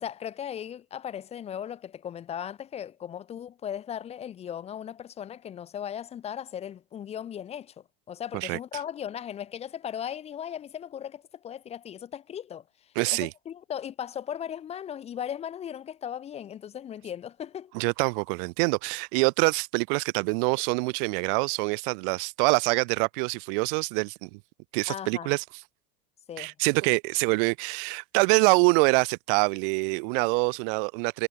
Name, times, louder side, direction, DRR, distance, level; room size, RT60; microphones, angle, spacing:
voice 1, 0.0-7.7 8.1-12.6 13.1-17.7 24.9-25.3 26.3-26.5, left 9 dB, 20° left, 0.5 m, -37 dB
voice 2, 13.0-13.3 17.7-24.4 24.7-25.4 26.4-31.3, right 32 dB, 60° right, 0.7 m, -25 dB
supercardioid pair, 120°, 30 cm